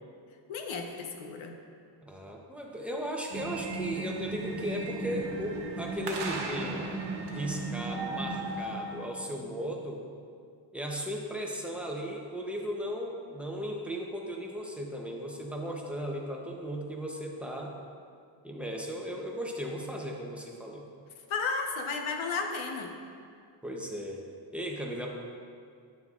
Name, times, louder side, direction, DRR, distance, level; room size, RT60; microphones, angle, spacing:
voice 1, 0.5-1.6 21.3-22.9, left 4 dB, 80° left, 3 dB, 1.0 m, -33 dB
voice 2, 2.0-6.8 7.3-10.0 10.7-17.7 18.4-20.8 23.6-24.2 24.5-25.1, equal, 5° right, -1 dB, 0.7 m, -36 dB
sound 1, 3.3-9.1, right 3 dB, 65° right, 1.3 m, -35 dB
9.2 x 9.2 x 2.4 m, 2.3 s
wide cardioid pair, 160°, 47 cm